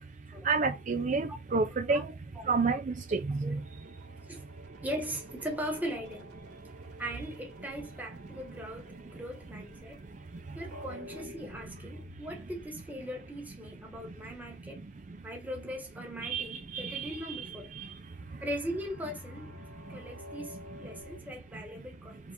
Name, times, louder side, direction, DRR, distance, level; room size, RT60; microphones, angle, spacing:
voice 1, 0.4-2.1 2.5-3.6 16.2-17.5, right 4 dB, 45° right, 0.4 m, -30 dB
sound 1, 2.8-12.8 18.0-21.2, left 1 dB, 85° right, 2.0 m, -51 dB
voice 2, 4.8-6.3 7.0-10.0 10.5-14.8 15.2-17.7 18.4-19.6 19.9-22.2, equal, 10° right, 1.4 m, -39 dB
4.5 x 3.6 x 2.6 m
head